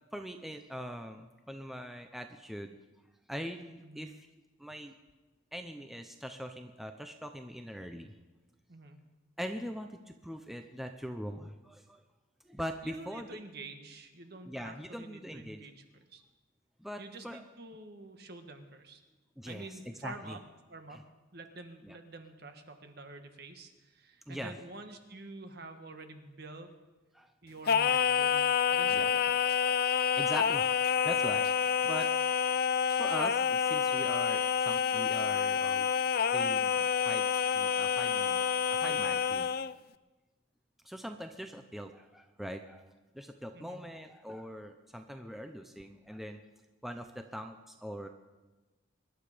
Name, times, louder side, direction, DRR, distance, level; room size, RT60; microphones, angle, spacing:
voice 1, 0.1-2.8 3.3-4.3 4.6-4.9 5.5-8.1 9.4-12.0 12.5-13.3 14.4-15.6 16.8-17.4 19.4-20.4 20.9-21.0 21.8-22.0 24.3-24.5 27.1-27.3 28.9-29.1 30.0-30.7 31.0-32.1 32.7-39.5 40.8-46.4 46.8-48.1, equal, ahead, 5 dB, 0.6 m, -42 dB
voice 2, 3.8-4.2 8.7-9.0 12.8-15.8 16.1-16.2 17.0-19.0 19.5-20.4 20.7-21.1 21.3-26.7 27.4-29.3 38.8-39.1 43.5-43.8, right 2 dB, 50° right, 6 dB, 1.5 m, -48 dB
Singing, 27.7-39.7, left 7 dB, 50° left, 0.4 m, -28 dB
24.0 x 11.0 x 5.1 m, 1.2 s
head